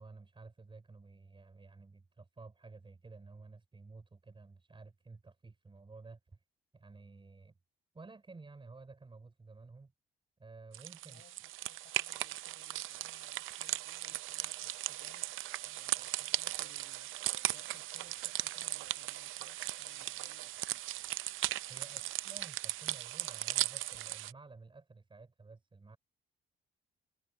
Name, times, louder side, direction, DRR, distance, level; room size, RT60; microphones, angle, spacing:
voice 1, 0.0-6.4 6.7-7.5 7.9-9.9 10.4-11.2 21.7-26.0, right 3 dB, 25° right, 4.6 m, -53 dB
sound 1, 10.7-24.3, right 16 dB, 85° right, 0.6 m, -38 dB
voice 2, 11.0-11.4 11.6-15.3 15.6-20.8 21.8-22.1, left 10 dB, 65° left, 5.6 m, -64 dB
cardioid pair, 90°, 20 cm